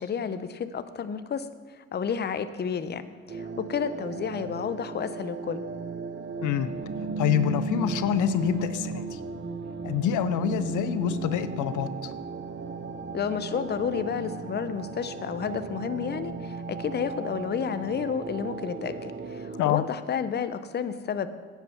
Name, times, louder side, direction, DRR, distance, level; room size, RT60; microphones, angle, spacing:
voice 1, 0.0-5.6 13.1-21.3, left 7 dB, 35° left, 12 dB, 0.6 m, -31 dB
sound 1, 3.3-19.6, right 4 dB, 35° right, 0.8 m, -35 dB
voice 2, 7.2-9.2 9.8-12.1 19.6-19.8, left 10 dB, 80° left, 12 dB, 0.6 m, -26 dB
9.7 x 8.1 x 5.8 m, 1.5 s
cardioid pair, 90°, 30 cm